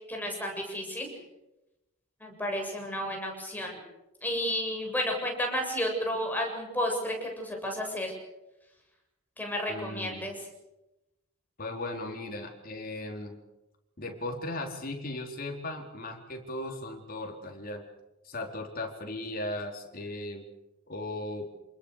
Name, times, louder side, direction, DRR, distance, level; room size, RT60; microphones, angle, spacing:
voice 1, 0.1-1.1 2.2-3.8 4.2-8.1 9.4-10.4, equal, 10° left, 1 dB, 7.6 m, -32 dB
voice 2, 9.7-10.3 11.6-13.4 14.0-17.8 18.2-20.4 20.9-21.5, left 2 dB, 45° left, 2 dB, 4.3 m, -37 dB
28.5 x 21.0 x 6.7 m, 0.96 s
head